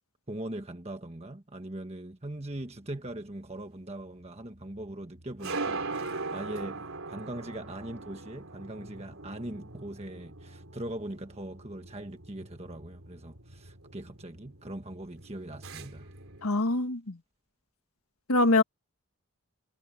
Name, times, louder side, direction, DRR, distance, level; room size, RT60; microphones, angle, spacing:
voice 1, 0.3-16.1, right 1 dB, 30° right, 1.4 m, -41 dB
sound 1, 2.4-16.5, right 3 dB, 70° right, 3.7 m, -41 dB
voice 2, 16.4-17.2 18.3-18.6, left 2 dB, 80° left, 1.7 m, -24 dB
head